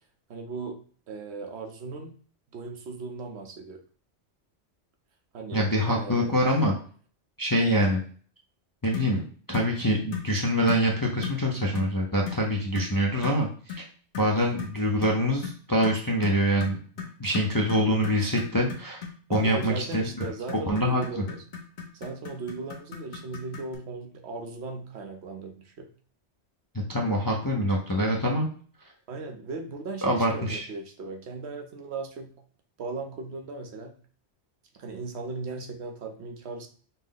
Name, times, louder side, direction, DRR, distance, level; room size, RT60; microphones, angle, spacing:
voice 1, 0.3-0.8 1.1-2.1 2.5-3.8 5.3-6.3 7.6-7.8 19.3-21.4 21.9-25.9 29.1-32.3 32.8-33.9 34.7-36.7, right 3 dB, 70° right, 5 dB, 0.9 m, -37 dB
voice 2, 5.5-6.7 7.4-8.0 8.8-9.2 9.5-13.8 14.2-16.8 17.2-19.0 19.3-20.2 20.7-21.2 26.7-28.5 30.0-30.7, equal, 30° left, -2 dB, 0.4 m, -25 dB
sound 1, 8.9-9.2 9.5-9.7 10.1-10.3 10.7-10.9 11.2-11.4 11.8-12.0 12.3-12.5 12.8-12.9 13.2-13.4 13.7-13.9 14.1-23.8, left 7 dB, 45° left, 0.9 m, -38 dB
5.3 x 2.1 x 3.8 m, 0.44 s
omnidirectional pair, 1.2 m